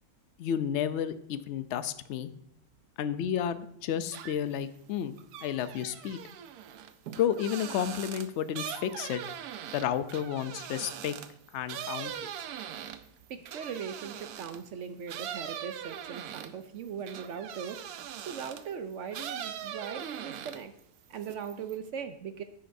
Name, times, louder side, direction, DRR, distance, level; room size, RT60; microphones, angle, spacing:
voice 1, 0.4-2.3 3.0-5.2 5.4-6.2 7.2-9.2 9.7-11.1 11.5-12.1, left 9 dB, 65° left, 12 dB, 0.7 m, -31 dB
sound 1, 4.1-4.6 4.9-14.7 15.1-18.7 19.1-20.8 21.1-21.8, right 9 dB, 85° right, 1.1 m, -41 dB
voice 2, 13.3-20.7 21.1-22.4, right 7 dB, 65° right, 9 dB, 0.8 m, -39 dB
9.9 x 9.5 x 2.6 m, 0.71 s
omnidirectional pair, 1.6 m